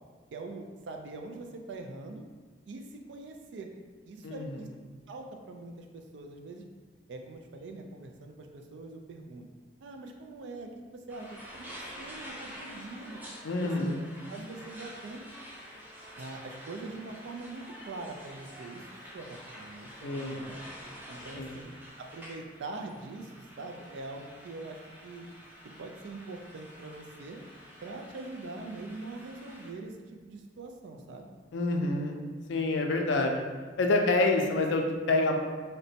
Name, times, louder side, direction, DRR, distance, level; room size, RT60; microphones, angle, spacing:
voice 1, 0.3-2.2 2.7-3.7 4.1-6.6 7.1-9.4 9.8-13.2 13.6-13.9 14.3-15.2 16.2-18.8 19.1-20.6 21.1-21.7 22.0-25.3 25.8-27.4 27.8-31.3, right 3 dB, 75° right, 3 dB, 0.3 m, -43 dB
voice 2, 4.2-4.6 13.4-14.0 20.0-20.5 21.3-21.5 31.5-32.2 32.5-33.4 33.8-35.4, left 2 dB, 85° left, 3 dB, 0.4 m, -27 dB
sound 1, 11.1-29.7, equal, 10° right, 0.4 m, -48 dB
3.9 x 2.1 x 2.7 m, 1.4 s
head